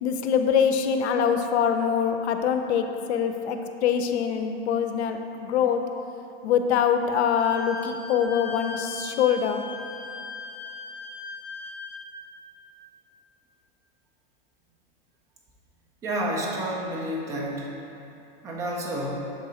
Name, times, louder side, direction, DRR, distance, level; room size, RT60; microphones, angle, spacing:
voice 1, 0.0-5.8 6.4-9.6, left 7 dB, 90° left, 6 dB, 0.6 m, -24 dB
Wind instrument woodwind instrument, 7.4-12.0, left 3 dB, 55° left, 1.5 m, -38 dB
voice 2, 16.0-17.7 18.4-19.2, right 1 dB, 10° right, -3 dB, 0.3 m, -29 dB
6.9 x 3.7 x 4.2 m, 2.8 s
supercardioid pair, 160°, 32 cm